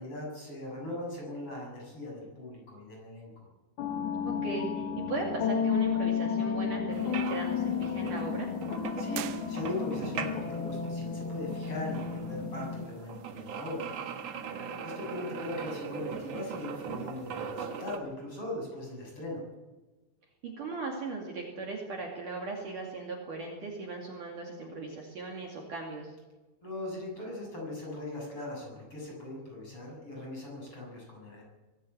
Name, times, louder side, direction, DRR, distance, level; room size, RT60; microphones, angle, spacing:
voice 1, 0.0-3.5 9.0-13.9 14.8-19.4 26.6-31.4, left 2 dB, 30° left, -1 dB, 7.9 m, -39 dB
sound 1, 3.8-12.8, left 6 dB, 60° left, 3.3 m, -32 dB
voice 2, 4.3-8.5 14.5-14.9 20.4-26.1, right 3 dB, 50° right, -1 dB, 3.7 m, -38 dB
sound 2, 6.9-18.0, right 6 dB, 70° right, 1.5 m, -40 dB
sound 3, 9.1-10.2, right 15 dB, 90° right, 3.2 m, -42 dB
23.0 x 14.0 x 8.8 m, 1.2 s
omnidirectional pair, 5.3 m